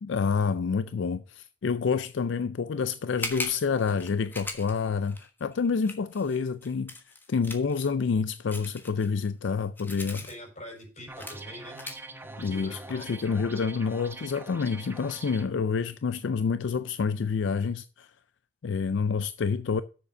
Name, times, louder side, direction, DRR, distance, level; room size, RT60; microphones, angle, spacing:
voice 1, 0.0-6.9 7.3-10.3 12.4-18.1 18.6-19.8, left 5 dB, 75° left, 0.4 m, -28 dB
sound 1, 3.1-7.9 8.5-10.3 10.8-10.9 11.2-11.4 11.8-12.0, left 2 dB, 10° left, 1.3 m, -38 dB
voice 2, 10.2-11.8 12.2-13.1, equal, 40° left, 5.9 m, -44 dB
sound 2, 11.1-15.5, right 2 dB, 10° right, 0.9 m, -44 dB
7.4 x 6.9 x 6.6 m
head